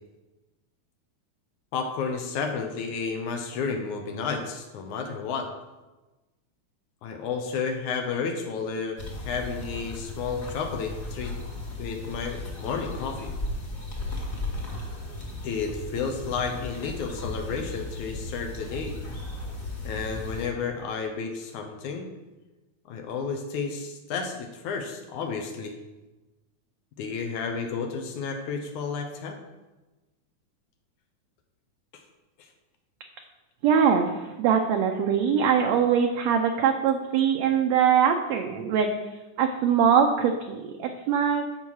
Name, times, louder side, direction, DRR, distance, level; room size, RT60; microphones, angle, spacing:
voice 1, 1.7-5.5 7.0-9.0 9.2-11.4 11.8-13.3 15.4-19.0 19.8-22.1 22.9-25.8 27.0-29.4 31.9-32.0, left 5 dB, 75° left, 4 dB, 2.3 m, -31 dB
sound 1, 9.0-20.5, left 2 dB, 35° left, 1.7 m, -36 dB
voice 2, 33.6-38.9 39.4-41.4, right 7 dB, 75° right, 4 dB, 1.7 m, -22 dB
13.0 x 5.7 x 4.7 m, 1.1 s
omnidirectional pair, 3.6 m